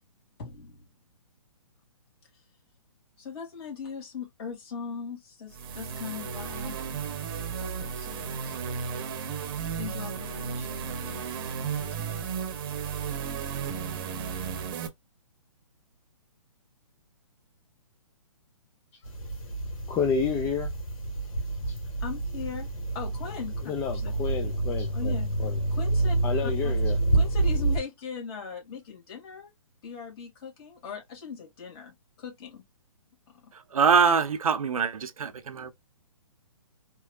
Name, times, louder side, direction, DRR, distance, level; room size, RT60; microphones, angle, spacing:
voice 1, 0.4-0.9 3.2-6.8 7.6-8.6 9.8-11.3 11.7-12.3 22.0-22.7 22.9-24.1 24.4-24.5 24.9-25.3 25.7-26.2 26.4-26.7 27.1-29.5 29.8-32.6 33.3-33.5, left 6 dB, 45° left, 2.8 m, -40 dB
sound 1, 5.5-14.9, right 7 dB, 40° right, 0.9 m, -34 dB
sound 2, 19.0-27.8, right 2 dB, 75° left, 2.4 m, -28 dB
voice 2, 19.9-20.7 21.7-21.8 23.6-25.1 25.4-25.6 26.2-27.0, left 6 dB, 15° left, 0.4 m, -30 dB
voice 3, 33.5-35.7, right 6 dB, 80° right, 0.8 m, -24 dB
4.6 x 3.1 x 2.4 m
hypercardioid pair, 145°, 18 cm